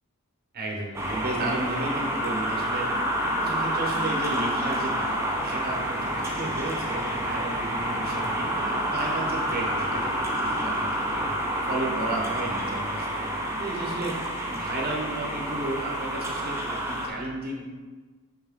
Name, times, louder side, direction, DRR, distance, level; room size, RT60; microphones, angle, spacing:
voice 1, 0.5-2.9 3.2-11.3 11.6-17.6, right 1 dB, 45° right, -2 dB, 1.0 m, -33 dB
sound 1, 0.9-17.1, right 1 dB, 10° right, 0.7 m, -28 dB
sound 2, 5.2-11.9, left 1 dB, 50° left, 0.9 m, -45 dB
5.8 x 5.4 x 3.7 m, 1.3 s
head